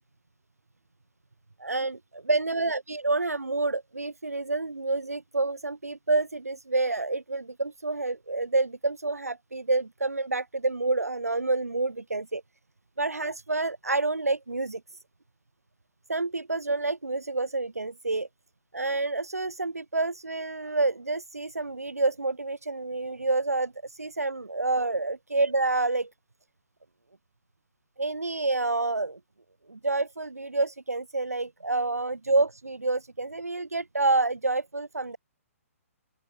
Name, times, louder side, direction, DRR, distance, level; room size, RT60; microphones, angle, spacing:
voice 1, 1.6-12.4 13.0-15.0 16.1-18.3 18.7-26.1 28.0-29.2 29.7-35.2, right 3 dB, 85° right, 1.9 m, -28 dB
open air
figure-of-eight pair, 125°, 8 cm